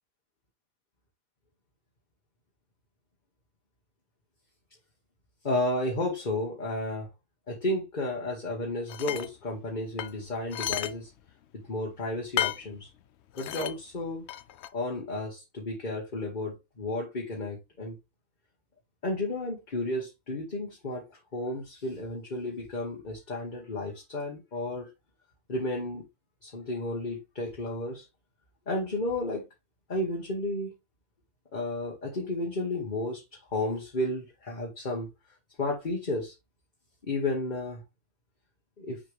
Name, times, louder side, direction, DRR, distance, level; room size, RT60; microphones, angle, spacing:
voice 1, 5.4-7.1 7.5-11.1 11.5-12.9 13.4-14.3 14.7-18.0 19.0-21.1 21.3-24.9 25.5-26.0 26.4-28.1 28.7-29.5 29.9-30.7 31.5-35.1 35.6-36.3 37.0-37.8 38.8-39.0, left 2 dB, 40° left, 1.4 m, -32 dB
sound 1, 8.9-9.3 10.0-10.9 11.3-11.4 12.4-12.7 13.3-13.7 14.3-14.7, left 11 dB, 70° left, 0.8 m, -32 dB
6.2 x 4.5 x 3.4 m
omnidirectional pair, 1.2 m